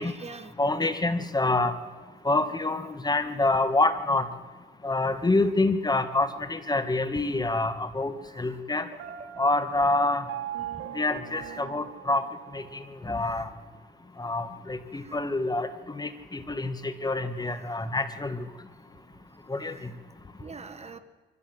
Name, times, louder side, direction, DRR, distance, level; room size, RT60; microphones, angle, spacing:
voice 1, 0.0-0.5 1.4-1.6 5.2-5.3 8.3-8.6 9.2-9.3 11.3-11.6 13.2-13.5 14.9-15.2 17.4-17.8 19.6-19.9 20.4-21.0, right 4 dB, 30° right, 11 dB, 1.5 m, -46 dB
voice 2, 0.6-1.7 2.2-4.3 4.8-8.9 9.4-10.2 10.9-12.2 12.5-12.6 13.0-13.5 14.2-15.7 15.9-18.4 19.5-19.7, left 2 dB, 20° left, 11 dB, 1.6 m, -26 dB
Piano, 9.0-12.9, right 11 dB, 80° right, 1.5 m, -40 dB
24.0 x 15.0 x 7.8 m, 1.4 s
cardioid pair, 90°, 20 cm